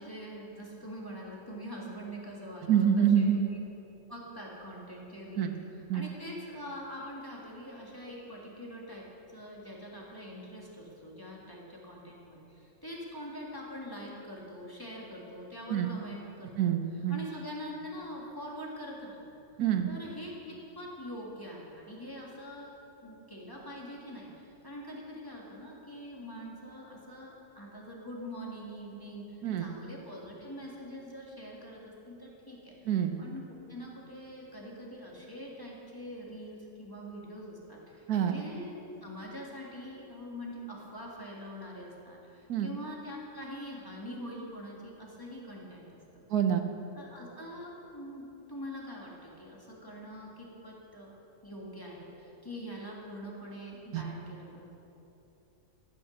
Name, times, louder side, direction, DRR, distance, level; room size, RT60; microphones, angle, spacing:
voice 1, 0.0-3.6 4.1-5.5 5.9-9.0 9.3-16.7 17.1-19.4 19.9-22.7 23.0-46.2 46.9-51.1 51.4-54.8, equal, 15° left, -4 dB, 2.0 m, -44 dB
voice 2, 2.6-3.4 5.4-5.5 5.9-6.0 15.7-15.9 16.6-17.2 19.6-19.9 29.4-29.7 32.9-33.1 38.1-38.4 42.5-42.7 46.3-46.7 53.9-54.0, right 9 dB, 80° right, 6 dB, 1.3 m, -26 dB
13.0 x 8.4 x 6.5 m, 2.9 s
omnidirectional pair, 1.6 m